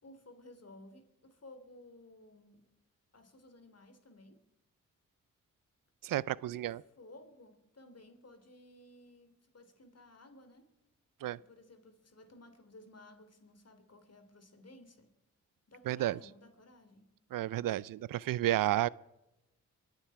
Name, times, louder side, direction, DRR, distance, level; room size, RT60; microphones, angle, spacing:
voice 1, 0.0-2.6 3.1-4.4 6.5-6.6 7.0-10.7 11.2-15.1 15.7-17.1, left 1 dB, 50° left, 3.1 m, -56 dB
voice 2, 6.0-6.8 11.2-11.4 15.9-16.2 17.3-18.9, right 14 dB, 80° right, 0.5 m, -31 dB
24.0 x 9.1 x 4.8 m
cardioid pair, 50°, 33 cm